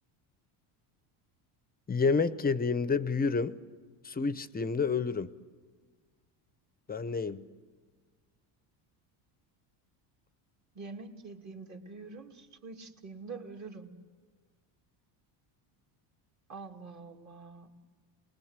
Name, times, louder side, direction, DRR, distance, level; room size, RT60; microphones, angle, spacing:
voice 1, 1.9-3.6 4.0-5.3 6.9-7.5, left 4 dB, 20° left, 0.8 m, -29 dB
voice 2, 10.7-13.9 16.5-17.7, right 4 dB, 35° right, 2.6 m, -45 dB
28.0 x 20.5 x 8.2 m
cardioid pair, 115°, 47 cm